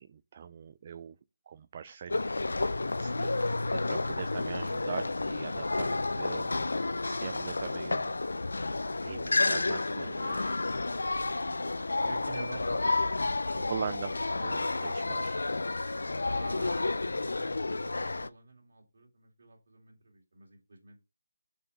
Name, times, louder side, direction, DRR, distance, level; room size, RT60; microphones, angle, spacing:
voice 1, 0.0-1.2 1.5-2.2 3.0-3.3 3.7-6.7 7.0-8.1 9.0-10.6 13.5-15.5, right 8 dB, 25° right, 0.4 m, -42 dB
sound 1, 2.1-18.3, left 2 dB, 80° left, 0.6 m, -31 dB
voice 2, 9.3-9.6 11.4-13.9 16.2-21.2, right 3 dB, 50° right, 3.2 m, -48 dB
7.0 x 4.7 x 5.5 m
figure-of-eight pair, 170°, 0 cm